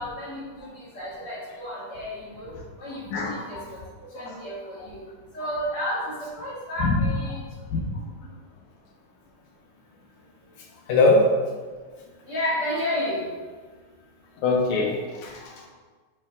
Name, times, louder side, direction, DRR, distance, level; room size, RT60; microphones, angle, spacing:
voice 1, 0.0-2.5 2.8-3.8 4.1-5.0 5.3-7.4 12.3-13.2, left 1 dB, 50° left, -9 dB, 2.6 m, -31 dB
voice 2, 3.1-3.6 4.2-4.4 4.8-4.9 6.8-6.9 7.7-7.8 10.9-11.3 14.4-15.7, left 2 dB, 75° left, -2 dB, 2.4 m, -22 dB
6.9 x 6.0 x 2.4 m, 1.4 s
omnidirectional pair, 3.5 m